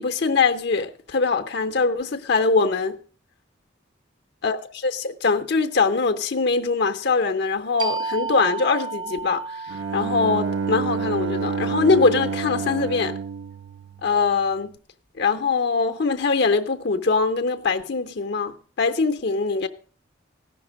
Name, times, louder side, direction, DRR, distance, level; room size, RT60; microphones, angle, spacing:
voice 1, 0.0-3.0 4.4-13.2 14.0-14.7 15.2-19.7, left 4 dB, 60° left, 0.7 m, -22 dB
sound 1, 7.8-13.1, right 4 dB, 25° right, 0.6 m, -34 dB
Bowed string instrument, 9.7-14.5, right 5 dB, 70° right, 0.4 m, -29 dB
15.5 x 6.0 x 6.1 m
head